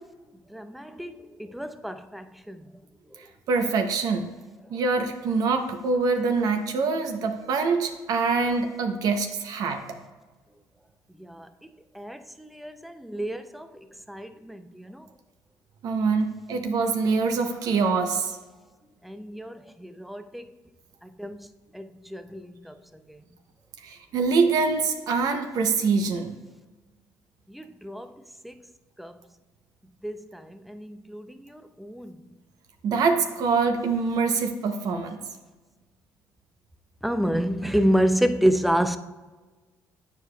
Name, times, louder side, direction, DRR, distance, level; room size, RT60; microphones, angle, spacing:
voice 1, 0.5-1.1 1.5-2.6 11.3-11.5 12.0-13.7 14.1-14.6 14.9-15.0 19.0-19.5 19.8-20.5 21.2-21.4 21.7-22.7 27.5-28.1 28.4-28.5 29.0-29.1 30.0-31.2 31.8-32.2 37.0-39.0, equal, ahead, 0.4 m, -28 dB
voice 2, 3.5-4.3 4.7-9.8 15.8-18.4 23.8-26.3 32.8-35.2, right 4 dB, 65° right, 0.6 m, -24 dB
9.3 x 4.8 x 2.2 m
cardioid pair, 110°, 7 cm